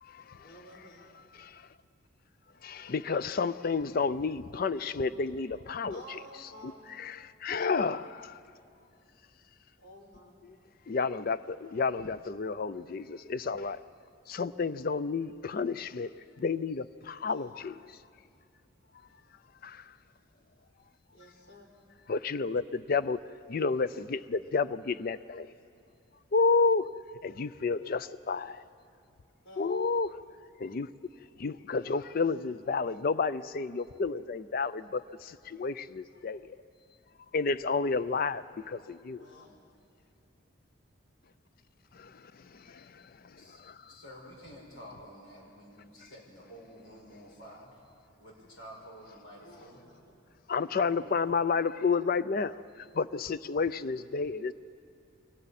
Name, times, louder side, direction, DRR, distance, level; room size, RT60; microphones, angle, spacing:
voice 1, 0.3-1.1 5.9-6.8 9.8-10.4 17.2-17.5 21.1-21.7 29.4-29.7 39.1-39.5 49.3-50.0, equal, 60° left, -1 dB, 4.0 m, -52 dB
voice 2, 2.6-6.2 6.9-8.3 10.9-13.8 14.3-16.1 16.4-17.8 22.1-23.2 23.5-25.5 26.3-26.9 27.2-28.6 29.6-30.1 30.6-30.9 31.4-35.0 35.5-36.4 37.3-39.2 50.5-52.5 53.0-54.5, left 4 dB, 45° left, 15 dB, 0.4 m, -30 dB
voice 3, 43.4-47.8 48.2-49.8 50.8-51.0, equal, 85° left, -2 dB, 5.4 m, -50 dB
28.5 x 23.5 x 4.3 m, 2.6 s
head